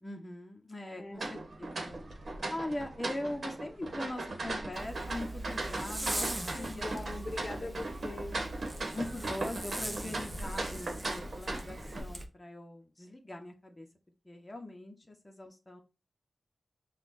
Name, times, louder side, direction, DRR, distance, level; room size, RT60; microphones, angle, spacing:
voice 1, 0.0-2.0 2.5-7.1 7.6-7.7 8.9-13.9 14.2-15.8, left 1 dB, 25° left, 2 dB, 0.9 m, -41 dB
voice 2, 1.0-1.3 6.5-8.4, left 2 dB, 50° left, 4 dB, 0.8 m, -41 dB
sound 1, 1.2-12.0, right 2 dB, 65° right, 1.1 m, -38 dB
Zipper (clothing), 4.7-12.3, right 1 dB, 20° right, 0.8 m, -40 dB
5.8 x 2.4 x 2.6 m, 0.30 s
wide cardioid pair, 65°, 0 cm